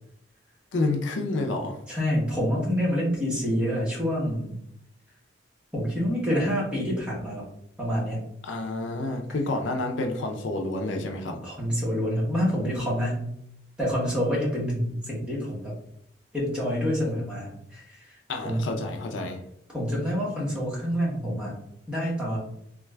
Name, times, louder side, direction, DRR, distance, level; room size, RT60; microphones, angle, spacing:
voice 1, 0.7-1.8 8.4-11.4 18.3-19.4, left 2 dB, 80° left, 3 dB, 0.5 m, -29 dB
voice 2, 1.9-4.6 5.7-7.5 7.8-8.2 11.4-13.2 13.8-15.8 16.3-18.2 18.4-18.6 19.7-21.6 21.9-22.4, equal, 5° right, -6 dB, 1.0 m, -27 dB
3.2 x 2.3 x 3.2 m, 0.73 s
head